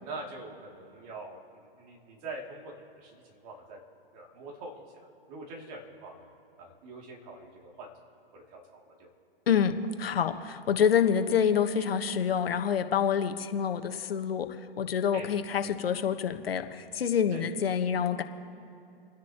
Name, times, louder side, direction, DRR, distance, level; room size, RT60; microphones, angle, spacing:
voice 1, 0.0-3.8 4.1-4.7 5.3-6.3 6.6-7.9 8.3-9.1 15.1-15.7 17.3-17.5, right 2 dB, 35° right, -1 dB, 2.8 m, -44 dB
voice 2, 9.5-14.5 14.8-18.2, left 7 dB, 70° left, 7 dB, 1.3 m, -27 dB
29.5 x 10.5 x 3.0 m, 2.6 s
hypercardioid pair, 130°, 30 cm